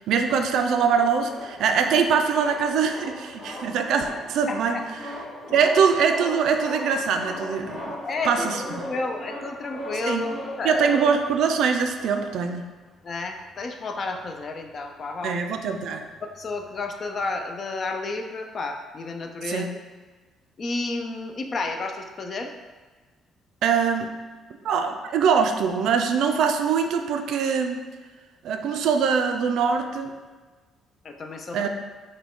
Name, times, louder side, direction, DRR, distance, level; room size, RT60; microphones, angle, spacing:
voice 1, 0.0-4.8 5.5-8.0 8.2-8.6 10.1-10.3 10.6-12.6 15.2-16.1 19.4-19.7 23.6-24.1 24.6-27.8 28.4-30.1 31.5-31.7, right 6 dB, 65° right, 6 dB, 0.4 m, -23 dB
sound 1, 0.9-12.6 13.2-13.3 13.4-13.6 14.1-15.4 15.7-17.5, equal, 10° left, 0.9 m, -38 dB
voice 2, 4.5-4.8 5.4-5.7 8.0-10.9 13.0-15.4 16.4-19.8 20.6-22.5 31.0-31.7, left 3 dB, 30° left, 4 dB, 0.4 m, -31 dB
5.9 x 2.2 x 3.6 m, 1.3 s
cardioid pair, 165°, 0 cm